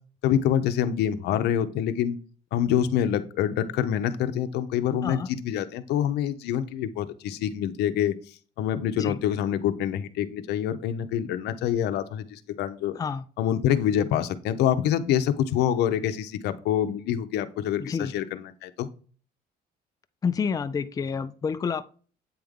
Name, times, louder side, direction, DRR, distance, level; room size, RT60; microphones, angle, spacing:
voice 1, 0.2-2.2 2.5-8.1 8.6-13.0 13.4-18.9, left 10 dB, 80° left, 10 dB, 0.7 m, -26 dB
voice 2, 12.9-13.3 17.8-18.1 20.2-21.8, left 6 dB, 20° left, 10 dB, 0.4 m, -29 dB
8.7 x 3.4 x 3.6 m, 0.40 s
cardioid pair, 110°, 17 cm